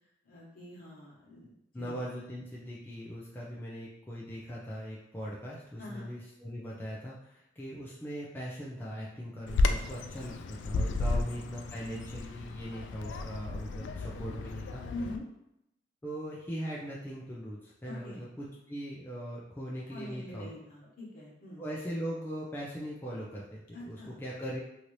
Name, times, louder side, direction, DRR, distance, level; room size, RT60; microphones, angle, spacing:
voice 1, 0.2-2.0 5.8-6.1 10.8-11.2 14.9-15.2 17.9-18.2 19.9-21.6 23.7-24.2, left 1 dB, 55° left, -6 dB, 1.2 m, -44 dB
voice 2, 1.7-14.8 16.0-20.5 20.8-20.9 21.6-24.6, equal, 10° left, -6 dB, 0.4 m, -40 dB
Bird vocalization bird call bird song, 9.5-15.2, left 2 dB, 90° left, 0.3 m, -33 dB
2.8 x 2.5 x 3.1 m, 0.82 s
head